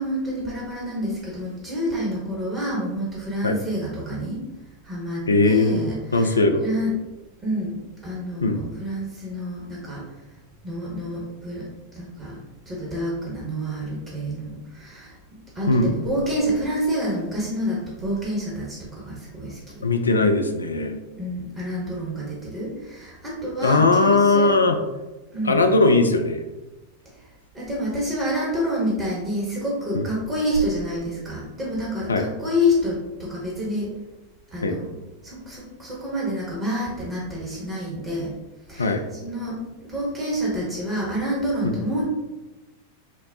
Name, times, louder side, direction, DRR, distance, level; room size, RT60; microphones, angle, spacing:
voice 1, 0.0-4.4 4.8-6.9 7.4-7.8 8.0-10.0 10.6-12.4 12.6-15.2 15.5-19.8 21.2-24.5 25.3-25.6 27.5-33.9 34.5-34.8 35.2-38.3 38.7-42.0, equal, 25° right, -5 dB, 1.2 m, -28 dB
voice 2, 5.2-5.8 6.1-6.6 8.4-8.6 15.7-15.9 19.8-21.0 23.6-24.8 25.4-26.4 29.9-30.1 32.1-32.3 34.6-34.8 38.8-39.0 41.6-41.7, left 3 dB, 75° left, 5 dB, 0.4 m, -19 dB
5.9 x 2.0 x 2.7 m, 1.1 s
figure-of-eight pair, 90°, 0 cm